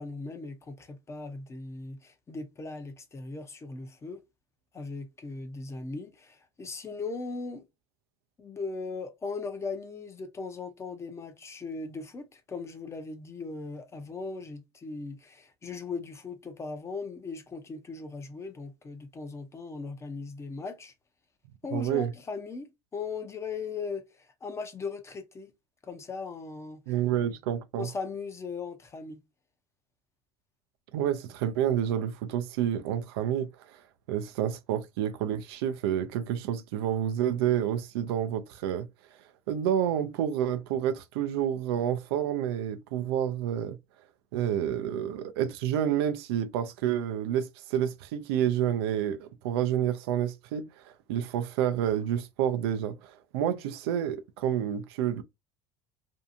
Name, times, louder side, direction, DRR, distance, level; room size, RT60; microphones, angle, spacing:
voice 1, 0.0-4.2 4.7-7.6 8.4-20.9 21.6-25.5 25.8-26.8 27.8-29.2, left 4 dB, 20° left, 0.6 m, -38 dB
voice 2, 21.7-22.1 26.9-27.9 30.9-33.8 34.1-38.9 39.5-43.8 44.3-55.2, right 10 dB, 75° right, 0.4 m, -29 dB
2.7 x 2.3 x 2.6 m
supercardioid pair, 100°, 13 cm